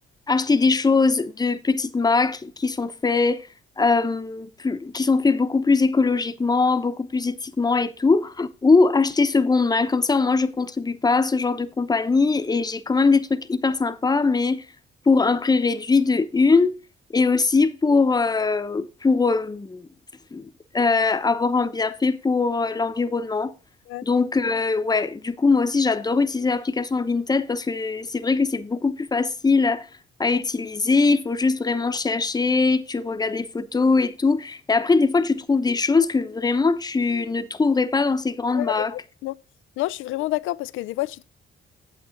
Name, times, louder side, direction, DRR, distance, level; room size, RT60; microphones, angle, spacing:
voice 1, 0.3-3.5 3.8-14.7 15.1-16.7 17.1-19.9 20.3-20.4 20.7-23.5 24.0-29.9 30.2-38.9, left 4 dB, 20° left, 0.8 m, -21 dB
voice 2, 38.5-38.9 39.2-39.4 39.8-41.2, left 17 dB, 85° left, 0.4 m, -28 dB
8.9 x 7.8 x 3.9 m
cardioid pair, 90°, 20 cm